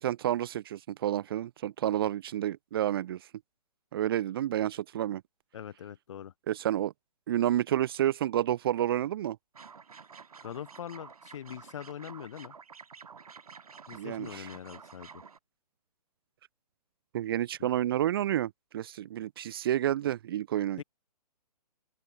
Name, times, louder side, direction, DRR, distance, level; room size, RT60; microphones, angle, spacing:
voice 1, 0.0-3.2 3.9-5.2 6.5-6.9 7.3-9.4 13.9-14.5 17.1-20.8, right 12 dB, 35° right, 0.8 m, -30 dB
voice 2, 5.5-6.3 10.4-12.6 13.9-15.2 17.6-17.7 20.8-20.9, left 9 dB, 45° left, 3.9 m, -42 dB
sound 1, 9.5-15.4, right 6 dB, 60° right, 5.6 m, -50 dB
open air
figure-of-eight pair, 130°, 21 cm